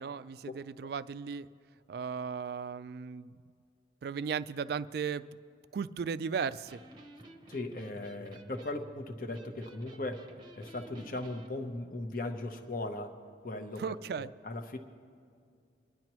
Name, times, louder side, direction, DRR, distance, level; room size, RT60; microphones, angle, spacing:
voice 1, 0.0-1.5 1.9-3.4 4.0-5.3 5.7-6.8 13.8-14.3, right 6 dB, 55° right, 15 dB, 0.3 m, -36 dB
Electric guitar, 6.6-11.5, right 1 dB, 25° right, 0.8 m, -52 dB
voice 2, 7.5-10.3 10.6-13.2 13.4-14.8, left 2 dB, 45° left, 5 dB, 0.8 m, -38 dB
24.0 x 10.5 x 3.0 m, 2.3 s
head